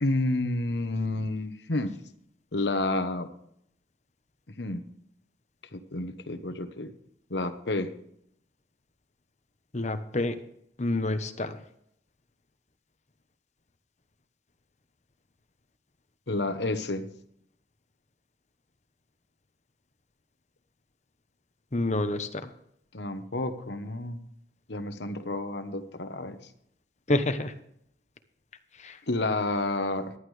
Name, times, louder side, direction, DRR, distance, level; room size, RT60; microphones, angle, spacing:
voice 1, 0.0-1.9 2.5-3.3 4.5-4.8 5.7-6.9 7.3-7.9 16.3-17.1 22.9-24.3 24.7-26.4 29.1-30.1, left 2 dB, 60° left, 10 dB, 1.2 m, -30 dB
voice 2, 9.7-10.4 10.8-11.6 21.7-22.5 27.1-27.5 28.8-29.0, left 2 dB, 35° left, 9 dB, 1.0 m, -28 dB
15.5 x 11.5 x 3.3 m, 0.72 s
head